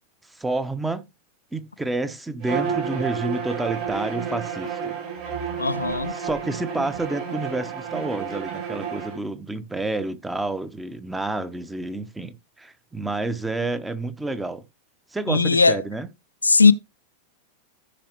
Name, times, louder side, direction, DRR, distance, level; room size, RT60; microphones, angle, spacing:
voice 1, 0.3-1.0 1.5-4.9 6.1-14.6 15.1-16.1, right 2 dB, 10° right, 1.0 m, -29 dB
Bowed string instrument, 2.4-9.2, right 7 dB, 40° right, 6.1 m, -30 dB
voice 2, 5.6-6.1 15.3-15.8 16.4-16.7, left 4 dB, 80° left, 0.6 m, -18 dB
14.5 x 5.8 x 3.0 m
figure-of-eight pair, 90°, 0 cm